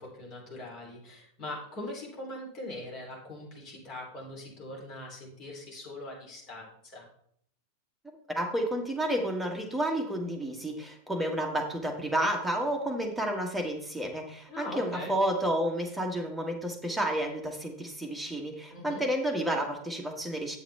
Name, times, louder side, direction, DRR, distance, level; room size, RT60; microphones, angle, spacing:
voice 1, 0.0-7.1 14.5-15.1 18.7-19.0, left 1 dB, 35° left, -2 dB, 3.1 m, -41 dB
voice 2, 8.3-20.6, right 1 dB, ahead, 1 dB, 1.4 m, -31 dB
8.4 x 7.4 x 3.4 m, 0.68 s
figure-of-eight pair, 90°, 0 cm